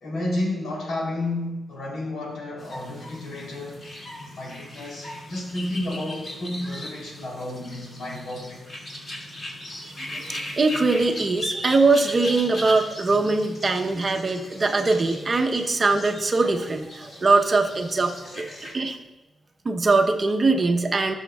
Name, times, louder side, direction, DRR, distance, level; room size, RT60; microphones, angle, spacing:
voice 1, 0.0-3.8 4.4-8.6, left 1 dB, 75° left, -3 dB, 3.2 m, -31 dB
sound 1, 2.6-18.7, left 1 dB, 40° left, 2.3 m, -38 dB
voice 2, 9.8-18.5 18.7-19.0 19.6-21.2, right 3 dB, 35° right, 3 dB, 0.8 m, -22 dB
17.5 x 6.4 x 2.3 m, 1.1 s
cardioid pair, 110°, 0 cm